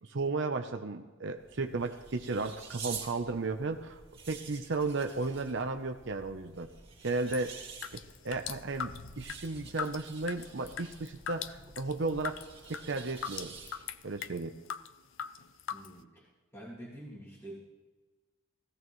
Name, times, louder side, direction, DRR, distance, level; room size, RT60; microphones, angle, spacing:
voice 1, 0.0-4.0 4.3-6.7 7.0-7.5 7.9-12.4 12.7-13.5 14.0-14.5, right 3 dB, 65° right, 6 dB, 0.7 m, -34 dB
sound 1, 1.3-14.1, right 5 dB, 30° right, 2.5 m, -49 dB
sound 2, 7.3-14.9 15.2-16.0, left 8 dB, 75° left, 0.5 m, -41 dB
voice 2, 15.7-17.6, right 1 dB, 15° left, -5 dB, 2.1 m, -47 dB
17.5 x 16.0 x 3.1 m, 1.3 s
head